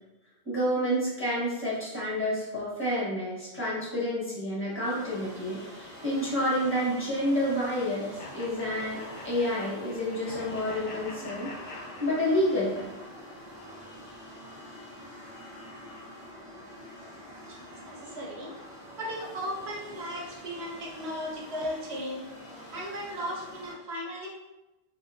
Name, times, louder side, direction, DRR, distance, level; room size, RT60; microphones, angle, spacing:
voice 1, 0.4-11.5 12.0-12.9, equal, 10° left, -8 dB, 1.2 m, -29 dB
sound 1, 4.8-23.8, equal, 5° right, 0.8 m, -46 dB
sound 2, 8.2-12.8, left 3 dB, 60° left, 0.7 m, -45 dB
voice 2, 17.9-18.6 19.0-22.3 22.7-24.3, equal, 65° right, -3 dB, 1.0 m, -36 dB
3.0 x 2.7 x 2.5 m, 0.99 s
omnidirectional pair, 1.3 m